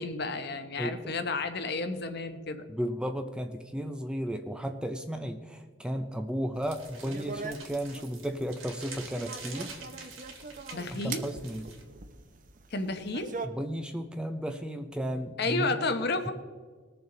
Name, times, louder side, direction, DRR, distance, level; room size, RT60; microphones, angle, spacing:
voice 1, 0.0-2.7 10.7-11.2 12.7-13.3 15.4-16.3, left 3 dB, 50° left, 8 dB, 0.9 m, -31 dB
voice 2, 2.7-9.7 11.0-11.7 13.4-15.8, equal, 5° right, 6 dB, 0.5 m, -34 dB
sound 1, 6.6-13.5, right 4 dB, 40° right, 0.7 m, -42 dB
sound 2, 6.6-11.8, right 5 dB, 85° right, 2.3 m, -47 dB
20.0 x 6.9 x 3.8 m, 1.5 s
head